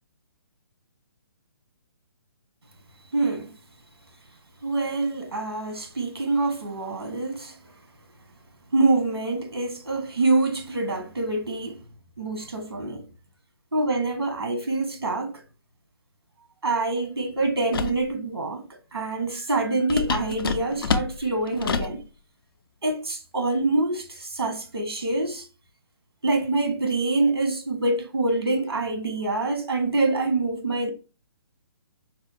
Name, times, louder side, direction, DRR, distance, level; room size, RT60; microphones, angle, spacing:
voice 1, 3.1-3.5 4.6-7.7 8.7-11.8 12.2-13.1 13.7-15.4 16.6-18.6 18.9-22.0 22.8-25.5 26.2-30.9, right 2 dB, 90° right, 1.2 m, -25 dB
sound 1, 17.7-18.0 19.9-22.0, left 5 dB, 65° left, 0.4 m, -27 dB
4.8 x 2.0 x 2.6 m
figure-of-eight pair, 140°, 13 cm